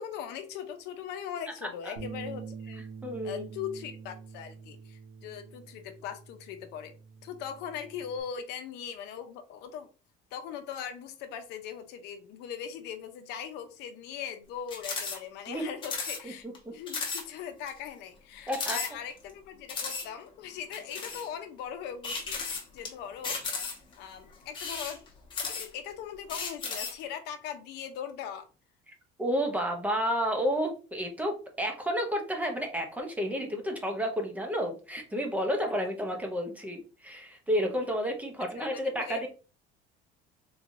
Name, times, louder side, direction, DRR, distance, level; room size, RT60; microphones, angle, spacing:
voice 1, 0.0-2.8 3.2-6.9 7.2-9.9 10.3-16.4 16.7-23.4 24.0-25.0 25.3-28.5 38.6-39.3, left 8 dB, 60° left, 7 dB, 0.6 m, -40 dB
Bass guitar, 2.0-8.2, right 5 dB, 75° right, 1.1 m, -45 dB
voice 2, 3.0-3.5 15.5-15.6 16.2-16.3 18.5-18.8 29.2-39.3, equal, 10° right, 3 dB, 0.5 m, -31 dB
sound 1, 14.7-15.2 15.4-15.5 15.8-16.2 16.5-16.6 16.9-17.2 17.7-17.8 18.5-19.3 19.7-20.1 20.7-21.3 22.0-22.9 23.2-23.9 24.5-25.9 26.3-27.0, left 4 dB, 25° left, 1.0 m, -35 dB
3.7 x 3.1 x 2.5 m, 0.35 s
cardioid pair, 170°, 19 cm